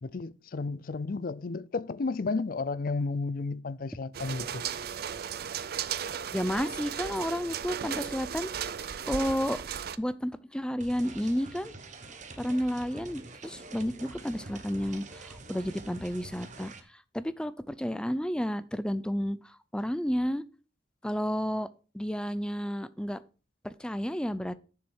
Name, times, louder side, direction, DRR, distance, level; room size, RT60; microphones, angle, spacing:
voice 1, 0.0-4.6, left 3 dB, 55° left, 0.5 m, -32 dB
sound 1, 4.1-10.0, right 8 dB, 60° right, 0.5 m, -36 dB
voice 2, 6.3-8.5 9.1-9.6 10.0-11.7 12.4-16.7 17.1-20.4 21.0-21.7 21.9-23.2 23.6-24.6, equal, 5° left, 0.5 m, -31 dB
sound 2, 10.8-16.8, right 3 dB, 45° right, 1.1 m, -46 dB
9.4 x 7.2 x 4.5 m
head